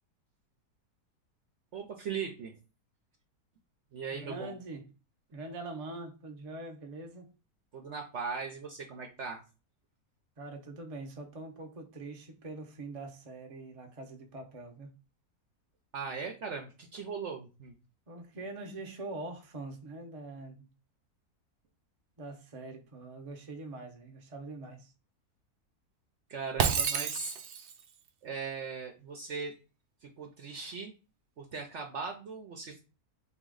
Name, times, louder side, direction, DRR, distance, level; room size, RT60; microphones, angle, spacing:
voice 1, 1.7-2.6 3.9-4.5 7.7-9.4 15.9-17.8 26.3-27.3 28.2-29.5 30.0-30.9 31.4-32.8, right 5 dB, 60° right, 0.9 m, -39 dB
voice 2, 4.1-4.9 5.3-7.3 10.4-14.9 18.1-20.7 22.2-24.9, right 2 dB, 30° right, 0.7 m, -43 dB
Shatter, 26.6-27.8, right 7 dB, 85° right, 0.5 m, -30 dB
4.2 x 3.1 x 3.7 m
omnidirectional pair, 1.6 m